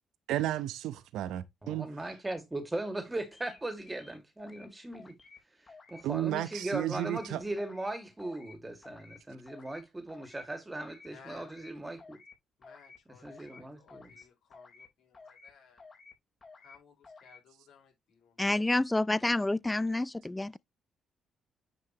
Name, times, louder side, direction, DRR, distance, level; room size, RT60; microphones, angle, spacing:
voice 1, 0.3-1.9 6.0-7.4, right 13 dB, 85° right, 0.8 m, -33 dB
voice 2, 1.6-5.2 5.9-12.2 13.2-14.1, right 2 dB, 15° right, 2.1 m, -38 dB
sound 1, 3.3-3.6 3.9-4.7 4.9-5.4 5.7-6.0 6.3-6.6 6.9-7.3 7.6-7.9 8.2-8.5 8.8-9.2 9.5-9.8 10.1-10.4 10.7-11.1 11.4-11.7 12.0-12.3 12.6-13.0 13.2-13.6 13.9-14.2 14.5-14.9 15.1-15.5 15.8-16.1 16.4-16.8 17.0-17.4, left 4 dB, 35° left, 3.8 m, -53 dB
voice 3, 11.0-12.0 12.6-15.9 16.5-18.6, left 6 dB, 75° left, 4.4 m, -59 dB
voice 4, 18.4-20.6, left 2 dB, 15° left, 0.4 m, -28 dB
9.8 x 5.6 x 3.0 m
cardioid pair, 90°, 0 cm